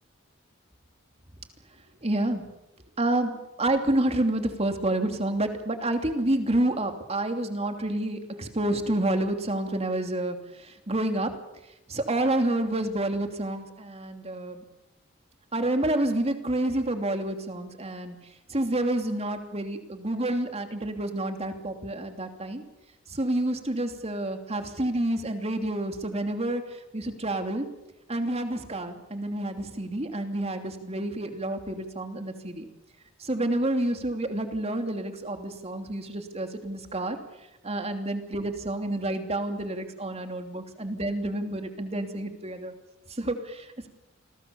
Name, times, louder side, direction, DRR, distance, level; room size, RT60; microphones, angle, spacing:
voice 1, 2.0-2.4 3.0-10.4 10.9-11.3 11.9-14.6 15.5-18.2 18.5-22.6 23.1-26.6 26.9-27.6 28.1-32.7 33.2-37.2 37.6-42.7 43.2-43.9, right 1 dB, 30° right, 6 dB, 2.9 m, -29 dB
28.0 x 21.0 x 7.1 m, 0.94 s
head